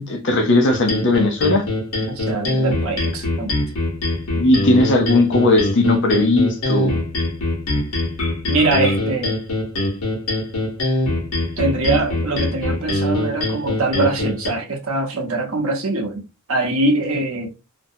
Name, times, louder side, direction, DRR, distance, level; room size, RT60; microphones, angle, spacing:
voice 1, 0.0-1.6 4.3-7.0, left 2 dB, 55° left, 0.6 m, -17 dB
sound 1, 0.7-14.5, left 1 dB, 75° left, 1.0 m, -23 dB
voice 2, 2.2-3.6 8.5-9.3 11.6-16.2 16.5-17.5, right 2 dB, 70° right, 0.8 m, -22 dB
2.5 x 2.2 x 2.7 m
head